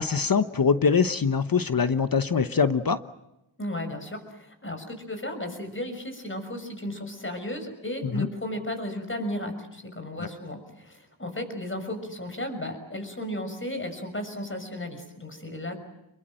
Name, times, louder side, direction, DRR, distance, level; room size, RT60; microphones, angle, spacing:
voice 1, 0.0-3.0 8.0-8.3 10.2-10.3, left 5 dB, 45° left, 11 dB, 1.0 m, -23 dB
voice 2, 3.6-15.8, left 1 dB, 25° left, 7 dB, 6.3 m, -34 dB
27.5 x 22.5 x 7.8 m, 0.88 s
wide cardioid pair, 70°, 48 cm